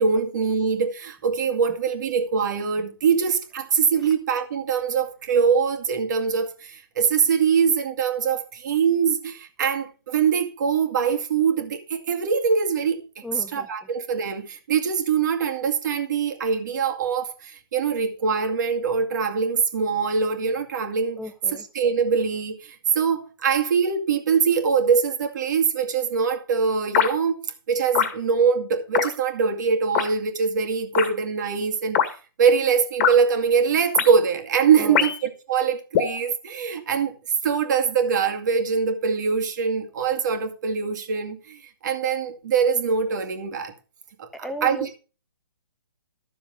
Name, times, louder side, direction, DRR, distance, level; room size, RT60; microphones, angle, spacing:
voice 1, 0.0-13.0 13.3-21.2 21.7-27.4 27.7-32.0 32.4-37.1 37.4-43.7 44.2-44.9, right 6 dB, 50° right, 2.2 m, -23 dB
voice 2, 13.2-13.7 21.2-21.7 34.8-35.0 44.4-44.9, equal, ahead, 0.6 m, -34 dB
sound 1, 26.9-27.1 27.9-28.1 28.9-29.1 29.9-30.1 30.9-31.1 31.9-32.1 33.0-33.2 33.9-34.1 35.0-35.3 35.9-36.2, left 9 dB, 35° left, 1.7 m, -22 dB
13.0 x 6.9 x 5.2 m
hypercardioid pair, 140°, 12 cm